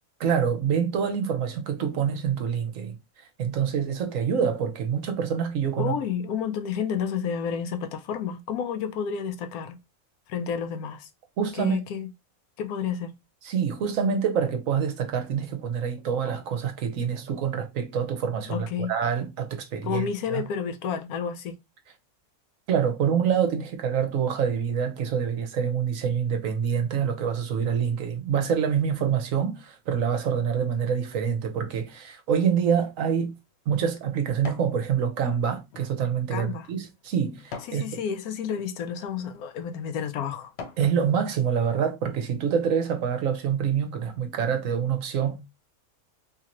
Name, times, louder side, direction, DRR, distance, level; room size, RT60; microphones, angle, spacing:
voice 1, 0.2-5.9 11.4-11.8 13.4-20.5 22.7-33.3 33.7-37.9 40.8-45.5, right 7 dB, 65° right, 1.1 m, -26 dB
voice 2, 5.8-9.8 10.3-11.1 11.6-12.1 12.6-13.1 18.5-18.9 19.8-21.6 36.3-36.7 37.7-40.5, left 7 dB, 85° left, 1.1 m, -30 dB
sound 1, 32.9-34.8 35.2-37.8 38.4-38.7 39.4-39.5 40.0-40.9 41.4-41.5, left 5 dB, 60° left, 0.8 m, -44 dB
3.5 x 2.7 x 2.9 m
omnidirectional pair, 1.5 m